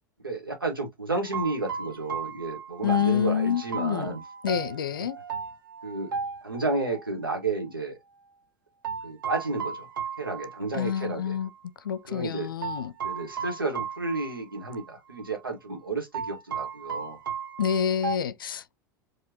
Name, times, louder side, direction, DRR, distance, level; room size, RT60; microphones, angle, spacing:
voice 1, 0.2-4.2 5.8-6.2 6.4-8.0 9.0-9.9 10.2-11.4 12.1-12.5 13.0-17.2, right 3 dB, 90° right, 1.7 m, -32 dB
sound 1, 1.3-7.1 8.8-11.1 11.4-11.5 12.6-14.9 15.2-15.3 16.1-18.2, right 6 dB, 75° right, 0.9 m, -35 dB
voice 2, 2.8-4.2 4.4-5.2 10.7-11.5 11.8-12.9 17.6-18.8, left 8 dB, 80° left, 0.5 m, -27 dB
4.8 x 2.9 x 2.9 m
figure-of-eight pair, 85°, 11 cm